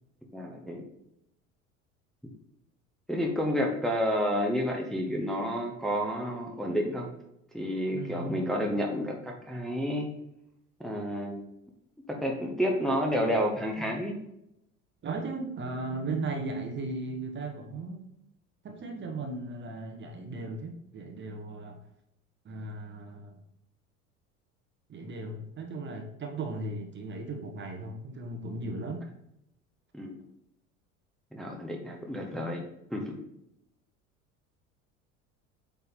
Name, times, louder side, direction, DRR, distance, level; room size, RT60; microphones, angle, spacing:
voice 1, 0.3-0.8 3.1-7.1 7.5-10.1 10.8-11.4 12.1-14.2 29.9-30.2 31.3-32.6 32.9-33.2, equal, ahead, 0 dB, 1.0 m, -30 dB
voice 2, 7.9-8.6 15.0-18.0 18.6-21.8 22.4-23.4 24.9-29.1, right 2 dB, 25° right, 2 dB, 1.1 m, -36 dB
8.3 x 3.5 x 4.1 m, 0.81 s
figure-of-eight pair, 70°, 41 cm